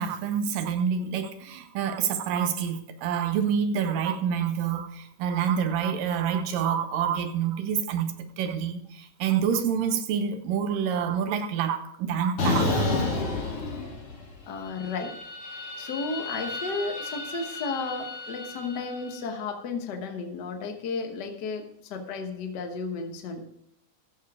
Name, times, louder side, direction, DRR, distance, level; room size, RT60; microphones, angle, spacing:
voice 1, 0.0-8.1 8.4-12.8, right 7 dB, 85° right, 2.7 m, -27 dB
sound 1, 12.4-14.3 14.7-19.0, left 2 dB, 45° left, 3.4 m, -31 dB
voice 2, 14.5-15.1 15.8-21.6 21.9-23.4, left 4 dB, 75° left, 0.9 m, -33 dB
14.0 x 7.0 x 4.8 m
omnidirectional pair, 3.8 m